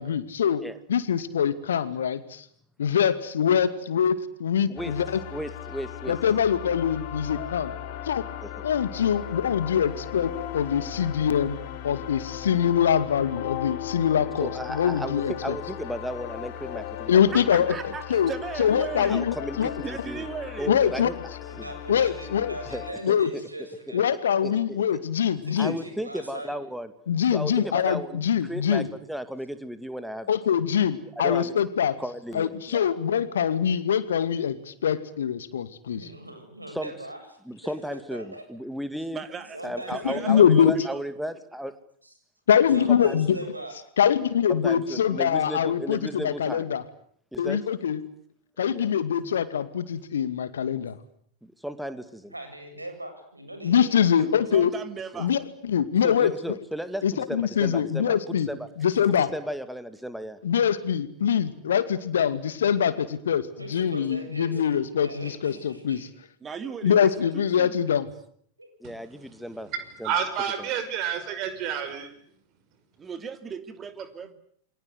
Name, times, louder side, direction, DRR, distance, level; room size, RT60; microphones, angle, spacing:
voice 1, 0.0-0.6 0.9-2.4 2.8-5.2 6.1-7.7 8.1-8.2 8.6-11.6 11.8-15.5 17.1-17.7 18.1-18.3 18.6-19.7 20.7-21.1 21.9-22.5 23.0-23.3 23.9-25.7 27.1-28.9 30.3-31.9 32.3-36.0 40.0-40.7 42.5-43.4 44.0-46.8 47.4-48.0 48.6-51.0 53.6-54.7 55.2-56.3 57.0-58.5 58.8-59.3 60.4-66.1 66.8-68.1, left 8 dB, 65° left, 13 dB, 2.3 m, -24 dB
sound 1, 4.8-22.9, left 12 dB, 45° left, 3.3 m, -37 dB
voice 2, 5.3-6.2 8.4-8.6 14.4-17.4 19.1-20.3 20.6-21.1 21.6-22.0 22.7-23.7 24.1-25.0 25.6-26.9 27.3-30.4 31.2-31.5 32.0-32.9 36.7-36.9 37.5-39.2 39.6-41.7 42.7-43.4 44.5-46.7 47.3-47.6 48.6-48.9 51.4-52.3 55.1-55.2 56.0-58.7 59.1-60.4 68.8-69.7 70.0-70.1 70.6-70.7, equal, ahead, 11 dB, 2.4 m, -35 dB
voice 3, 17.3-19.2 19.8-20.7 39.1-39.6 39.9-41.0 53.8-55.3 66.4-67.8 73.0-74.3, right 6 dB, 20° right, 10 dB, 2.7 m, -37 dB
voice 4, 21.5-24.0 25.4-26.5 35.9-37.2 37.6-38.4 39.5-40.4 42.7-43.8 52.3-54.2 56.0-56.2 63.6-66.1 68.6-68.7, right 1 dB, 85° right, 5 dB, 7.7 m, -40 dB
voice 5, 70.0-72.1, right 8 dB, 40° right, 10 dB, 6.1 m, -29 dB
29.0 x 24.5 x 8.1 m, 0.64 s
figure-of-eight pair, 90°, 0 cm